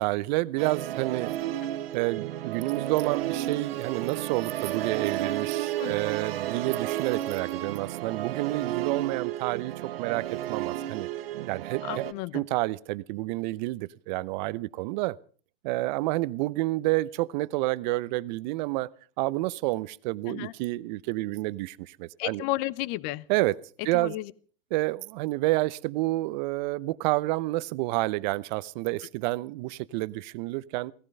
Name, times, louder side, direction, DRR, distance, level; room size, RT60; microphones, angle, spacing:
voice 1, 0.0-1.4 1.9-11.1 11.5-12.0 12.3-15.2 15.6-18.9 19.2-22.4 23.3-23.6 23.8-24.1 24.7-30.9, right 20 dB, 50° right, 0.8 m, -29 dB
Musical instrument, 0.6-12.1, right 13 dB, 75° right, 1.1 m, -32 dB
voice 2, 11.8-12.5 20.3-20.5 22.2-23.3 23.9-24.3, left 18 dB, 45° left, 0.8 m, -33 dB
17.5 x 15.5 x 5.4 m
hypercardioid pair, 125°, 30 cm